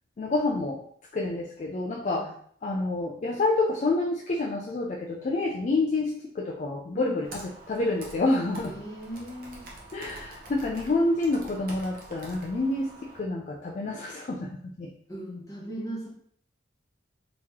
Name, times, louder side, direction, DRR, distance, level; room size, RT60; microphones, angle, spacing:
voice 1, 0.2-0.8 1.1-2.3 2.6-7.3 7.7-8.7 9.9-14.9, left 2 dB, 40° left, 0 dB, 0.3 m, -28 dB
Computer keyboard, 7.2-13.2, right 2 dB, 50° right, 0.8 m, -45 dB
voice 2, 8.7-9.7 15.1-16.1, right 1 dB, 20° left, -4 dB, 1.0 m, -38 dB
3.0 x 2.8 x 3.5 m, 0.63 s
head